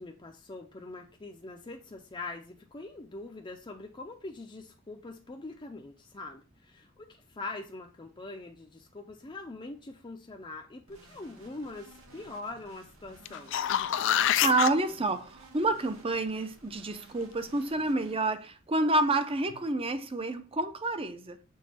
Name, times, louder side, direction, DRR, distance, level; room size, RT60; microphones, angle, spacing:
voice 1, 0.0-13.6, left 2 dB, 25° left, 0.6 m, -43 dB
sound 1, 10.9-18.1, right 2 dB, 85° right, 2.1 m, -55 dB
sound 2, 13.3-14.7 19.5-19.6, left 11 dB, 65° left, 0.4 m, -26 dB
voice 2, 14.1-21.4, right 2 dB, 30° right, 0.7 m, -29 dB
6.4 x 3.9 x 4.2 m
head